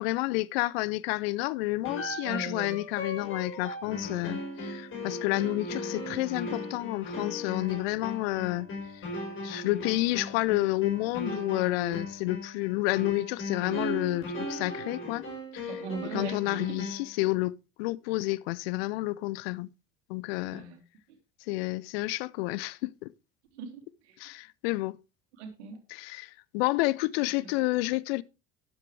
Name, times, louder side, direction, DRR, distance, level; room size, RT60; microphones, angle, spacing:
voice 1, 0.0-8.7 8.9-9.0 9.4-15.3 15.5-15.7 16.1-19.7 20.1-20.6 21.5-23.1 24.2-25.0 25.9-28.2, left 20 dB, 60° left, 0.6 m, -30 dB
sound 1, 1.8-17.2, left 1 dB, 35° left, 5.0 m, -37 dB
voice 2, 2.2-2.8 15.7-16.8 20.5-20.8 23.5-24.2 25.4-25.8 27.4-27.5, right 5 dB, 70° right, 2.8 m, -39 dB
12.5 x 9.5 x 3.3 m
figure-of-eight pair, 65°, 35 cm